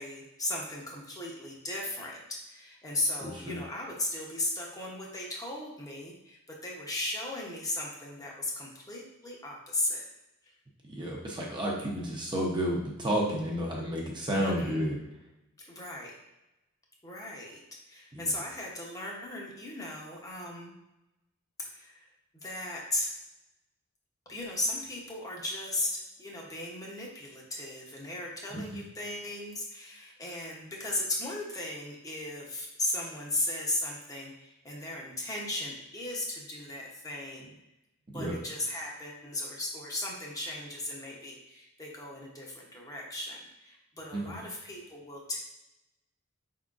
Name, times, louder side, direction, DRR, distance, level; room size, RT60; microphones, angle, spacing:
voice 1, 0.0-2.2 2.5-10.0 10.4-10.5 14.3-14.9 15.6-16.1 17.0-17.6 17.9-20.7 21.7-22.1 22.4-23.1 24.3-37.6 38.1-45.4, left 1 dB, 15° left, -2 dB, 0.7 m, -36 dB
voice 2, 3.2-3.6 10.8-15.0 18.1-18.3 28.5-28.8 38.1-38.3 44.1-44.4, equal, 20° right, -3 dB, 0.6 m, -31 dB
4.9 x 3.7 x 2.4 m, 0.94 s
head